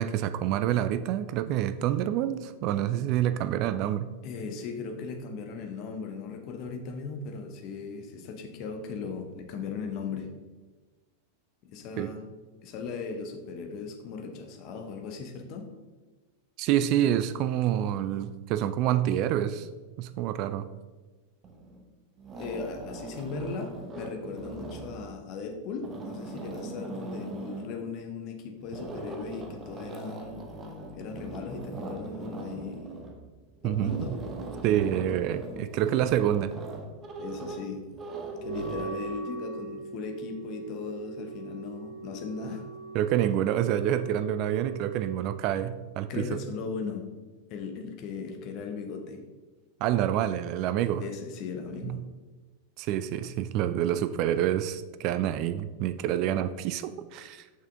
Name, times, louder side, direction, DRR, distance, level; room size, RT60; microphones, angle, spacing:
voice 1, 0.0-4.1 12.0-12.1 16.6-19.7 20.0-20.7 33.6-34.2 34.6-36.5 42.9-46.3 49.8-51.0 51.8-52.0 52.8-57.4, right 11 dB, 40° right, 12 dB, 0.3 m, -27 dB
voice 2, 4.2-10.3 11.6-12.2 12.6-15.7 22.4-30.4 30.9-32.8 33.6-34.1 37.2-37.8 38.4-42.6 46.1-47.1 47.5-49.2 51.0-52.0, left 5 dB, 40° left, 5 dB, 0.9 m, -37 dB
sound 1, 21.4-21.9 22.2-25.2 25.7-27.8 28.6-38.9, right 2 dB, 25° right, 0.8 m, -40 dB
Wind instrument woodwind instrument, 38.3-45.4, right 4 dB, 70° left, 1.5 m, -40 dB
6.1 x 5.6 x 3.6 m, 1.3 s
figure-of-eight pair, 90°, 0 cm